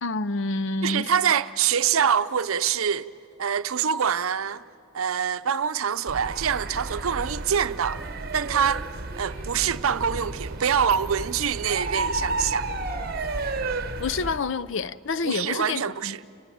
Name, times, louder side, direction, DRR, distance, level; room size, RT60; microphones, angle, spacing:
voice 1, 0.0-1.1 14.0-16.3, left 3 dB, 60° left, 0.5 m, -28 dB
voice 2, 0.8-3.1 3.4-4.6 4.9-8.0 8.3-8.9 9.2-12.6 15.2-16.2, right 7 dB, 80° right, 0.6 m, -25 dB
sound 1, 6.1-14.4, right 2 dB, 45° right, 0.9 m, -32 dB
sound 2, 8.0-8.8 9.1-13.8, left 1 dB, 10° left, 3.7 m, -50 dB
29.5 x 18.0 x 8.5 m
head